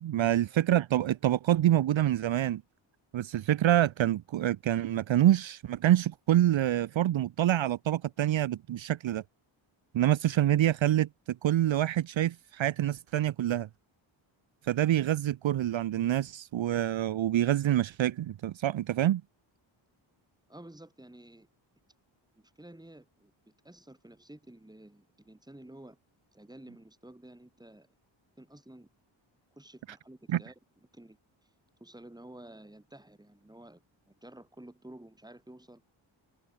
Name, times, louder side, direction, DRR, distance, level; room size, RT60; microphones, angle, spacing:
voice 1, 0.0-2.6 3.1-9.2 9.9-11.1 11.4-13.7 14.7-19.2 30.3-30.4, right 12 dB, 65° right, 0.8 m, -26 dB
voice 2, 20.5-21.5 22.3-26.0 26.3-27.9 28.4-28.9 29.6-30.5 30.9-31.2 31.8-35.8, right 1 dB, 10° right, 4.5 m, -51 dB
wide cardioid pair, 120°, 49 cm